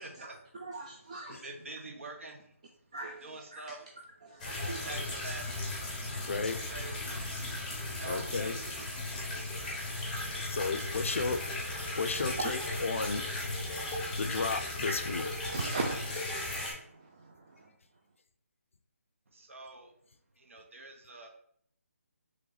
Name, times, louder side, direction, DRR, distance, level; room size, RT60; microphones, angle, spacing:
voice 1, 0.0-0.4 1.4-3.0 3.2-4.1 4.7-6.3 6.6-9.0 19.3-19.9 20.4-21.3, right 2 dB, 60° right, 3 dB, 0.9 m, -47 dB
voice 2, 0.6-1.4 2.9-3.3 3.5-3.6 4.2-4.9 10.2-10.5 12.2-12.6 15.5-17.7, right 3 dB, 30° right, 0 dB, 0.3 m, -39 dB
sound 1, 4.4-16.7, left 2 dB, 5° left, 0.8 m, -36 dB
voice 3, 6.3-6.6 8.1-8.6 10.4-11.4 11.9-13.3 14.2-15.3, left 4 dB, 60° left, 9 dB, 0.4 m, -33 dB
3.1 x 3.0 x 3.8 m, 0.64 s
hypercardioid pair, 170°, 8 cm